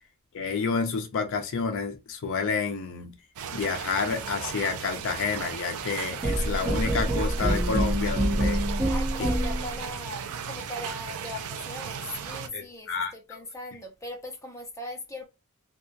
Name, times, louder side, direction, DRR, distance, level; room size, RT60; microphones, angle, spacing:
voice 1, 0.3-3.1 3.5-8.7 12.5-13.4, left 5 dB, 60° left, 0.4 m, -29 dB
sound 1, 3.4-12.5, right 7 dB, 70° right, 0.4 m, -36 dB
sound 2, 6.2-9.8, right 1 dB, 25° right, 0.7 m, -26 dB
voice 2, 8.9-15.3, left 1 dB, 15° left, 0.7 m, -39 dB
2.8 x 2.3 x 2.2 m
head